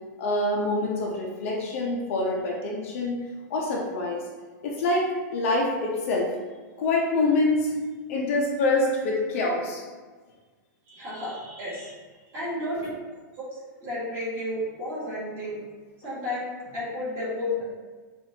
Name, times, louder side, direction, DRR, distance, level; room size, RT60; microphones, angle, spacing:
voice 1, 0.2-4.3 4.6-6.3 6.8-7.7 8.1-9.8, left 2 dB, 40° left, -2 dB, 0.6 m, -26 dB
voice 2, 10.9-11.9 12.3-12.9 13.5-15.6 16.0-17.6, left 1 dB, 25° right, -8 dB, 1.5 m, -32 dB
5.6 x 2.5 x 2.7 m, 1.4 s
supercardioid pair, 175°, 10 cm